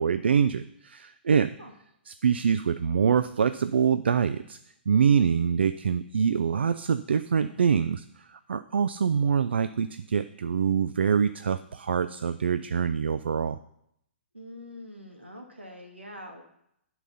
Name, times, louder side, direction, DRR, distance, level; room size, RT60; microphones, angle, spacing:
voice 1, 0.0-1.5 2.1-4.6 4.9-13.6, right 7 dB, 70° right, 13 dB, 0.3 m, -25 dB
voice 2, 14.3-16.4, left 1 dB, 90° right, 1 dB, 1.9 m, -44 dB
10.5 x 3.9 x 5.5 m, 0.76 s
figure-of-eight pair, 120°, 6 cm